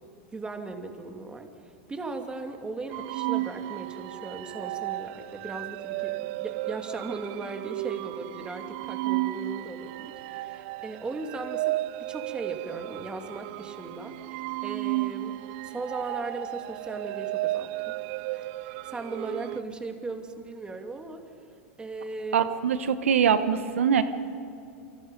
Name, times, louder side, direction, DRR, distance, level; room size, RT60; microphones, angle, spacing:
voice 1, 0.3-15.4 15.6-17.9 18.3-21.2 21.8-22.4, right 3 dB, 15° right, 5 dB, 2.5 m, -38 dB
sound 1, 2.9-19.6, right 18 dB, 55° right, 0.5 m, -34 dB
voice 2, 22.3-24.0, right 7 dB, 85° right, 11 dB, 1.1 m, -23 dB
28.0 x 25.5 x 5.3 m, 2.5 s
hypercardioid pair, 115°, 7 cm